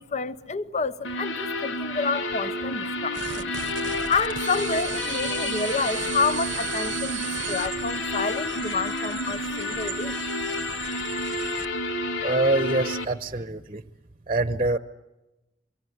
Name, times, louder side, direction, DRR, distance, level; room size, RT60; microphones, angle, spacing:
voice 1, 0.0-3.5 4.1-10.2, left 4 dB, 40° left, 0.8 m, -29 dB
sound 1, 1.0-13.0, left 2 dB, 85° left, 1.8 m, -30 dB
sound 2, 3.1-11.7, right 10 dB, 80° right, 0.8 m, -36 dB
voice 2, 12.2-13.8 14.3-14.8, right 2 dB, 30° right, 0.9 m, -25 dB
25.0 x 24.0 x 7.9 m
head